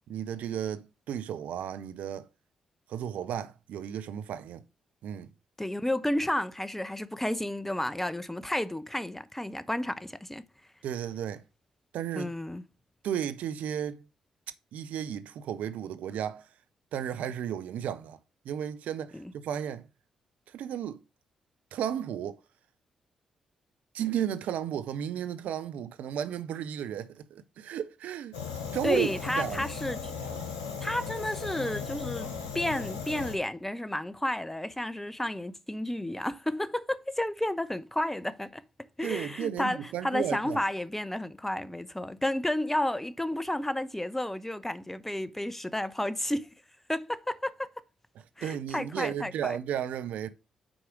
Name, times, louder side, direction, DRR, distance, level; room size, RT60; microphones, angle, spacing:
voice 1, 0.1-2.3 2.9-4.6 5.0-5.3 10.8-11.4 11.9-12.3 13.0-14.0 14.7-16.5 16.9-18.2 18.4-19.9 20.5-21.0 21.7-22.4 23.9-28.3 28.7-29.6 39.0-40.6 48.4-50.3, right 9 dB, 65° right, 0.5 m, -34 dB
voice 2, 5.6-10.4 12.2-12.6 19.1-19.3 28.8-30.2 30.8-32.3 32.5-38.6 39.0-39.8 40.0-46.5 46.9-47.7 48.4-49.6, left 1 dB, 10° left, 0.8 m, -31 dB
Fire, 28.3-33.3, left 6 dB, 85° left, 1.2 m, -37 dB
6.2 x 4.8 x 6.1 m
hypercardioid pair, 40°, 3 cm